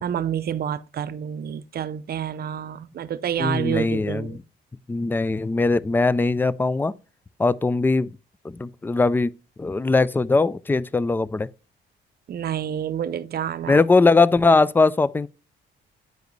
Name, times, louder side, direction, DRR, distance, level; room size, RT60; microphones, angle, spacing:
voice 1, 0.0-4.4 12.3-13.8, right 9 dB, 50° right, 0.6 m, -28 dB
voice 2, 3.4-4.4 4.9-6.9 7.4-8.1 8.4-9.3 9.6-11.5 13.7-15.3, left 3 dB, 10° left, 0.3 m, -20 dB
9.1 x 4.9 x 3.1 m
cardioid pair, 90°, 20 cm